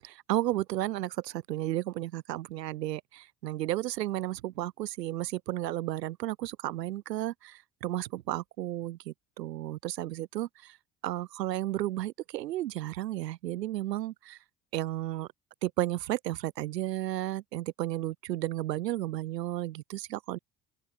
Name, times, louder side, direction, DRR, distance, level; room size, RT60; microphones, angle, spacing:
voice 1, 0.3-10.8 11.0-14.4 14.7-15.3 15.6-20.4, right 14 dB, 80° right, 4.0 m, -33 dB
open air
hypercardioid pair, 55°, 48 cm